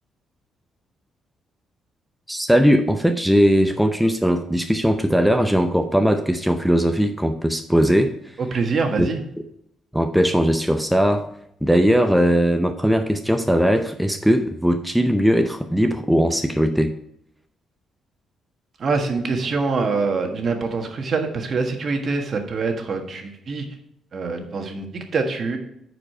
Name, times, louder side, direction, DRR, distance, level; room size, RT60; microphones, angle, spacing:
voice 1, 2.3-8.1 9.0-9.1 9.9-11.3 11.6-16.9, equal, ahead, 6 dB, 0.6 m, -19 dB
voice 2, 8.4-9.2 18.8-23.7 24.1-25.6, right 4 dB, 50° right, 4 dB, 1.5 m, -24 dB
9.5 x 4.9 x 4.4 m, 0.76 s
cardioid pair, 90°, 0 cm